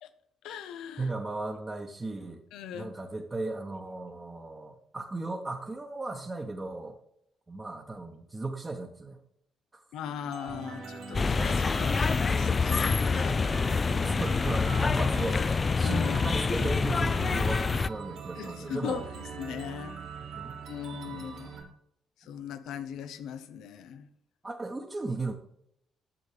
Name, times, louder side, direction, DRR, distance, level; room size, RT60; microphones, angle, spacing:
voice 1, 0.4-1.1 2.5-2.9 9.9-13.6 15.8-16.3 18.3-20.0 20.7-21.6 22.2-24.1, left 8 dB, 65° left, 11 dB, 0.7 m, -39 dB
voice 2, 1.0-2.4 2.7-6.9 7.5-9.2 9.7-9.8 13.9-15.4 15.8-19.0 20.3-20.6 21.1-21.6 24.4-25.3, right 3 dB, 25° right, 0 dB, 1.3 m, -36 dB
sound 1, 10.3-21.6, right 5 dB, 70° right, 2.8 m, -42 dB
sound 2, 11.1-17.9, left 4 dB, 35° left, 0.3 m, -26 dB
9.8 x 7.8 x 3.4 m, 0.72 s
hypercardioid pair, 45°, 0 cm